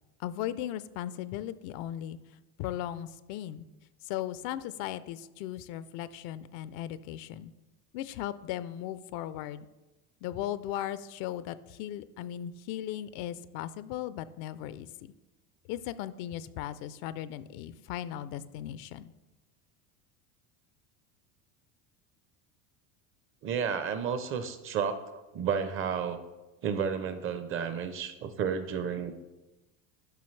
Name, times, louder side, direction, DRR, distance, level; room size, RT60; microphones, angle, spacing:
voice 1, 0.2-2.2 2.6-3.6 4.0-7.5 7.9-9.7 10.2-15.1 15.7-19.1, left 12 dB, 55° left, 15 dB, 0.5 m, -37 dB
voice 2, 23.4-26.2 26.6-29.1, right 7 dB, 30° right, 11 dB, 0.6 m, -32 dB
11.5 x 5.5 x 3.2 m, 1.1 s
supercardioid pair, 135°, 41 cm